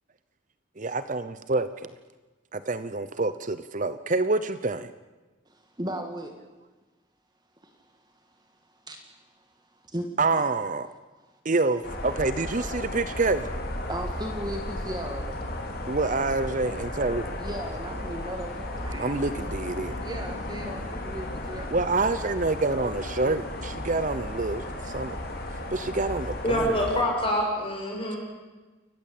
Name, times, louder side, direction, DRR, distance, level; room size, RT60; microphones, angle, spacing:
voice 1, 0.8-1.9 2.5-4.9 10.2-10.9 11.4-13.5 15.9-17.4 19.0-20.0 21.7-25.2 25.5-26.9, right 3 dB, 40° right, 13 dB, 0.8 m, -27 dB
voice 2, 5.5-6.4 7.6-7.9 8.9-9.0 9.9-10.1 13.9-15.4 17.4-19.3 20.0-21.7, right 1 dB, 20° right, 5 dB, 1.7 m, -36 dB
sound 1, 11.8-27.0, left 1 dB, 50° left, 3.4 m, -34 dB
voice 3, 26.4-28.2, equal, 25° left, -1 dB, 6.9 m, -26 dB
28.5 x 15.0 x 8.5 m, 1.2 s
head